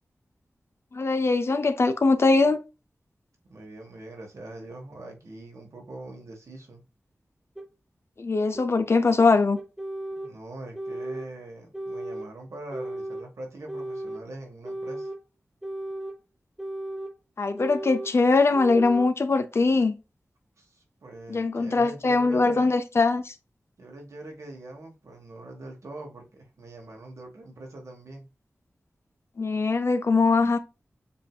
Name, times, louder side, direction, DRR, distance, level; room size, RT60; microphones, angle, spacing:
voice 1, 0.9-2.6 8.2-9.6 17.4-19.9 21.3-23.3 29.4-30.6, left 3 dB, 55° left, 0.5 m, -22 dB
voice 2, 3.5-6.8 10.1-15.1 20.6-22.7 23.8-28.3, right 2 dB, 75° right, 1.5 m, -43 dB
sound 1, 7.6-7.7 8.6-8.7 9.6-10.3 10.7-11.3 11.7-12.3 12.7-13.3 13.7-14.2 14.6-15.2 15.6-16.2 16.6-17.1 17.6-18.1 18.5-19.1, right 1 dB, 5° right, 0.8 m, -35 dB
7.4 x 2.7 x 2.3 m
wide cardioid pair, 75°, 5 cm